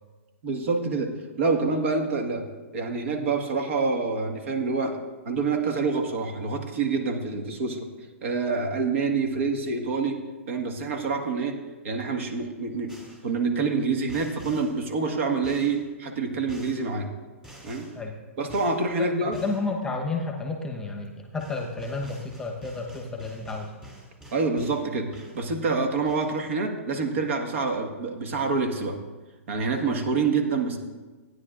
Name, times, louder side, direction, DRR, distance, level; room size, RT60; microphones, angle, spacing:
voice 1, 0.4-2.4 2.7-5.0 5.2-7.9 8.2-10.2 10.5-11.6 11.8-12.9 13.2-17.1 17.6-17.9 18.4-19.4 24.3-29.0 29.5-30.8, right 4 dB, 65° right, 4 dB, 1.6 m, -27 dB
sound 1, 12.9-13.3 14.1-14.7 15.4-15.8 16.5-16.8 17.4-18.0 18.5-18.8 19.3-19.6 21.0-21.1 21.4-24.9 25.1-25.7 26.1-26.5, equal, 10° right, 2.7 m, -47 dB
voice 2, 19.0-23.7, left 3 dB, 10° left, 2 dB, 1.1 m, -31 dB
15.5 x 9.7 x 2.5 m, 1.3 s
hypercardioid pair, 135°, 8 cm